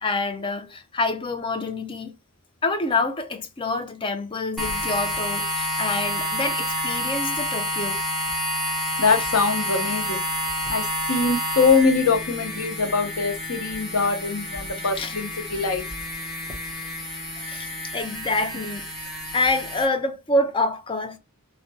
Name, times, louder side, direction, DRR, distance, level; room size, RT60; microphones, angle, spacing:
voice 1, 0.0-2.1 2.6-8.0 15.0-15.1 17.4-21.2, left 2 dB, 25° left, 0.4 m, -27 dB
sound 1, 4.6-19.9, left 1 dB, ahead, 0.8 m, -29 dB
voice 2, 9.0-10.2 10.7-15.8, left 4 dB, 90° left, 0.8 m, -23 dB
3.5 x 2.2 x 2.5 m
head